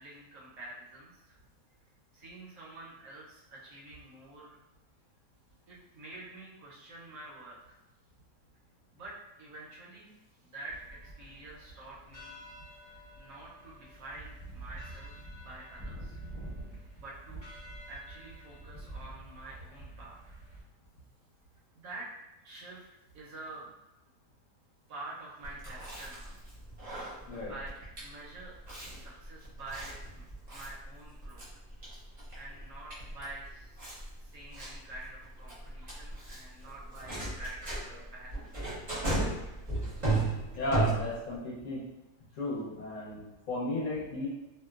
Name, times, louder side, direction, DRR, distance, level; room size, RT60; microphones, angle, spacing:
voice 1, 0.0-1.4 2.1-4.6 5.7-7.8 8.9-10.1 10.4-12.4 13.2-16.2 17.0-17.4 17.9-20.4 21.7-22.1 22.4-22.9 23.1-23.7 24.9-26.4 27.5-28.6 28.9-31.5 32.3-33.9 34.2-38.4, right 2 dB, 65° right, -5 dB, 0.9 m, -47 dB
sound 1, 10.7-20.6, right 1 dB, 5° left, 0.7 m, -47 dB
Chewing mastication, 25.4-41.4, right 2 dB, 35° right, 0.6 m, -36 dB
voice 2, 40.5-41.8 42.3-44.3, left 2 dB, 60° left, -6 dB, 1.0 m, -34 dB
2.8 x 2.1 x 2.3 m, 0.99 s
omnidirectional pair, 1.8 m